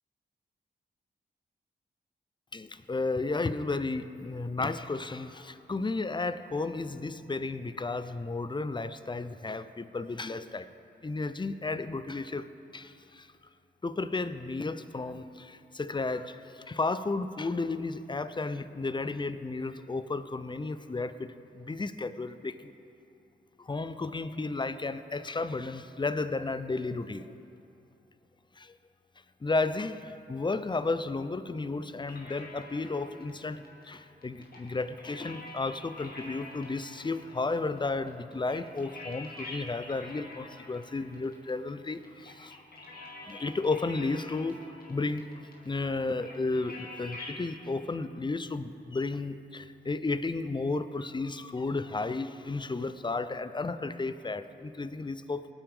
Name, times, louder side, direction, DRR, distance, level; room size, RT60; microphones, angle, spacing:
voice 1, 2.5-10.7 11.0-13.3 13.8-21.3 21.5-22.7 23.6-27.3 28.6-28.7 29.4-42.6 43.2-44.6 44.9-45.3 45.7-55.5, left 3 dB, 25° left, 12 dB, 0.6 m, -33 dB
sound 1, 32.0-47.4, left 2 dB, 50° left, 1.9 m, -48 dB
18.5 x 9.0 x 3.6 m, 2.8 s
cardioid pair, 50°, 19 cm